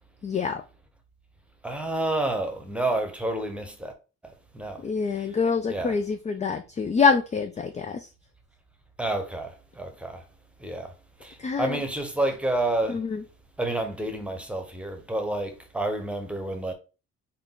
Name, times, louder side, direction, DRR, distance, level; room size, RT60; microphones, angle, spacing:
voice 1, 0.2-0.6 4.8-8.1 11.4-11.8 12.9-13.2, left 5 dB, 25° left, 0.3 m, -25 dB
voice 2, 1.6-3.9 4.5-4.8 5.7-5.9 9.0-10.2 10.6-10.9 11.2-13.0 13.6-16.7, right 2 dB, 5° right, 0.9 m, -29 dB
3.8 x 2.2 x 3.7 m
cardioid pair, 90°, 30 cm